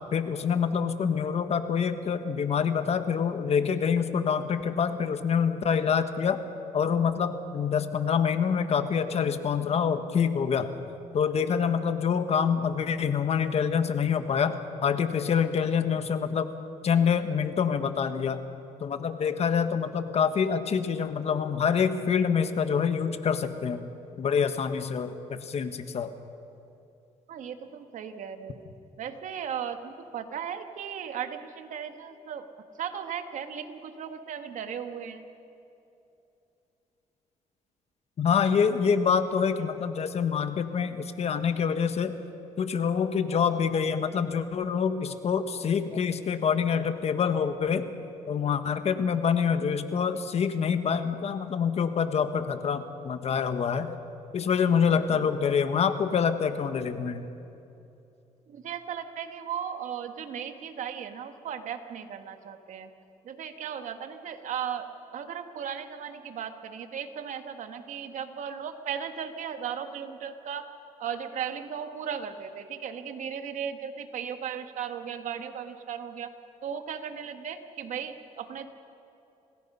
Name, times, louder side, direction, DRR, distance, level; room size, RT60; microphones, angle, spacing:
voice 1, 0.1-6.4 6.7-10.7 11.1-16.5 16.8-18.4 18.8-23.8 24.2-26.1 38.2-42.1 42.6-47.9 48.3-54.0 54.3-57.3, left 6 dB, 50° left, 9 dB, 1.4 m, -26 dB
voice 2, 27.3-28.6 29.0-32.5 32.8-35.3 55.1-55.2 58.5-62.9 63.2-64.8 65.1-70.7 71.0-76.3 76.6-78.7, right 8 dB, 65° right, 7 dB, 1.6 m, -36 dB
27.0 x 18.5 x 5.6 m, 2.8 s
cardioid pair, 100°, 14 cm